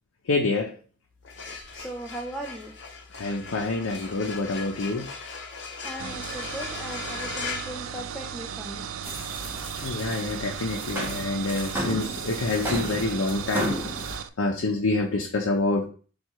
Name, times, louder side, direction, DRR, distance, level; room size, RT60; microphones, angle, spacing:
voice 1, 0.3-0.7 3.2-5.1 9.8-15.9, left 3 dB, 85° left, 1 dB, 0.6 m, -27 dB
sound 1, 1.1-8.6, left 4 dB, 60° left, 0.8 m, -38 dB
voice 2, 1.4-2.7 5.8-8.9, right 1 dB, 5° left, 0 dB, 0.4 m, -38 dB
sound 2, 6.0-14.3, right 8 dB, 85° right, 0.3 m, -36 dB
sound 3, 9.0-14.2, equal, 10° right, 0.9 m, -34 dB
4.2 x 2.4 x 4.5 m, 0.40 s
head